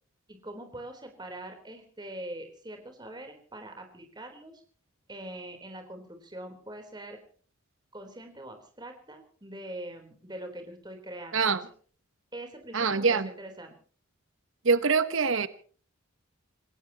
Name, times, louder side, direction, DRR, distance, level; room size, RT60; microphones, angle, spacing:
voice 1, 0.3-4.5 5.1-7.2 7.9-11.6 12.3-13.7, right 1 dB, 20° right, 3.8 m, -43 dB
voice 2, 12.7-13.3 14.6-15.5, right 5 dB, 70° right, 1.1 m, -24 dB
28.0 x 16.5 x 3.0 m
head